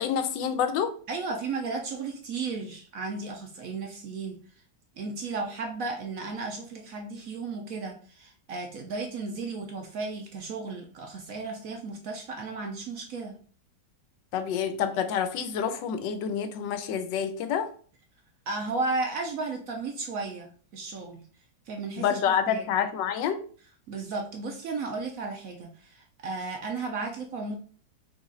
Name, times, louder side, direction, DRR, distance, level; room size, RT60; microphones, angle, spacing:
voice 1, 0.0-0.9 14.3-17.7 22.0-23.4, left 8 dB, 85° left, 10 dB, 1.3 m, -28 dB
voice 2, 1.1-4.4 5.0-13.4 18.5-21.2 21.7-22.2 22.5-22.6 23.9-27.6, right 3 dB, 65° right, 3 dB, 0.9 m, -34 dB
4.1 x 3.0 x 3.7 m, 0.43 s
omnidirectional pair, 1.9 m